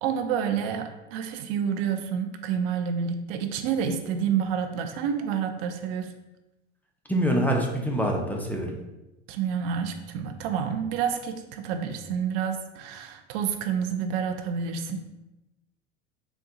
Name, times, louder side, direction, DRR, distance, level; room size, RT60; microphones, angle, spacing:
voice 1, 0.0-6.1 9.3-15.0, right 7 dB, 60° right, 6 dB, 0.6 m, -29 dB
voice 2, 7.1-8.8, right 1 dB, 5° left, 0 dB, 0.5 m, -25 dB
4.0 x 2.3 x 3.7 m, 0.99 s
hypercardioid pair, 85°, 34 cm